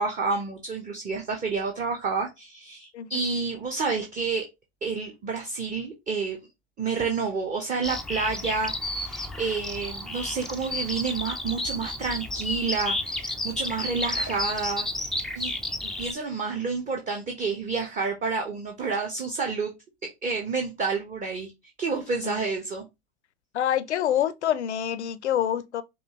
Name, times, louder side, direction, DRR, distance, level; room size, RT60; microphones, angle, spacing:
voice 1, 0.0-4.5 4.8-6.4 6.8-15.5 15.8-19.7 20.2-21.5 21.8-22.8, right 4 dB, 25° right, 0.9 m, -29 dB
Bird vocalization bird call bird song, 7.8-16.1, left 2 dB, ahead, 0.4 m, -32 dB
voice 2, 23.5-25.8, left 10 dB, 85° left, 0.6 m, -26 dB
5.3 x 2.5 x 2.9 m
hypercardioid pair, 100°, 33 cm